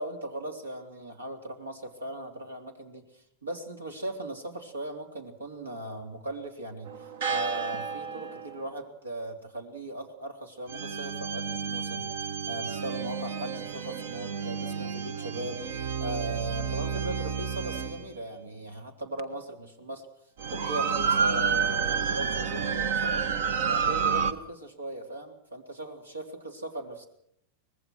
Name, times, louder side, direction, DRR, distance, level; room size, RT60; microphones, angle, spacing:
voice 1, 0.0-12.1 12.5-20.1 20.5-23.3 23.7-26.2 26.5-27.1, right 1 dB, 75° right, 6 dB, 3.5 m, -38 dB
sound 1, 6.9-8.7 10.7-18.1 19.2-19.3 20.4-24.3, right 6 dB, 55° right, 1.3 m, -30 dB
24.0 x 20.5 x 6.2 m, 0.74 s
figure-of-eight pair, 90°, 0 cm